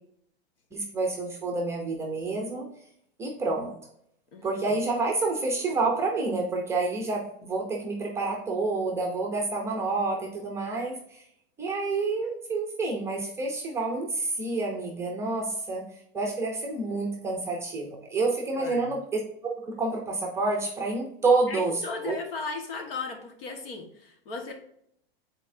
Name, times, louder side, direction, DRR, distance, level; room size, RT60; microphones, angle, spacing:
voice 1, 0.7-2.7 3.2-3.7 4.4-11.2 11.6-19.2 19.6-22.2, right 3 dB, 10° right, 0 dB, 0.7 m, -28 dB
voice 2, 4.3-4.8 18.5-18.9 21.5-24.5, left 4 dB, 70° left, 3 dB, 1.6 m, -36 dB
9.7 x 4.2 x 2.7 m, 0.70 s
supercardioid pair, 170°, 30 cm